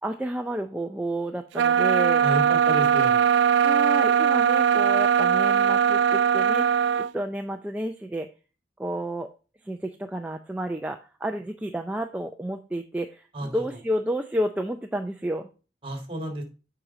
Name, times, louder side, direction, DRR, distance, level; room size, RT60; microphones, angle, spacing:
voice 1, 0.0-2.2 3.6-6.7 7.0-8.3 8.8-9.3 9.6-15.5, right 1 dB, 10° right, 4 dB, 0.4 m, -31 dB
sound 1, 1.5-7.1, right 8 dB, 75° right, 0.3 m, -20 dB
voice 2, 2.2-3.3 13.3-13.6 15.8-16.4, right 1 dB, 30° right, 3 dB, 1.7 m, -31 dB
7.4 x 5.0 x 4.1 m, 0.33 s
head